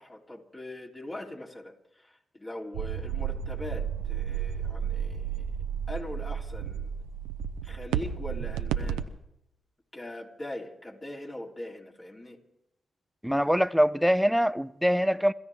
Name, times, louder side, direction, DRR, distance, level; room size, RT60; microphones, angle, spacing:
voice 1, 0.0-5.6 5.9-6.9 7.6-9.1 9.9-12.4, left 1 dB, 25° left, 3.5 m, -41 dB
sound 1, 2.7-9.0, right 8 dB, 90° right, 0.7 m, -32 dB
voice 2, 13.2-15.3, equal, ahead, 0.6 m, -23 dB
26.5 x 14.0 x 3.6 m
supercardioid pair, 45°, 0 cm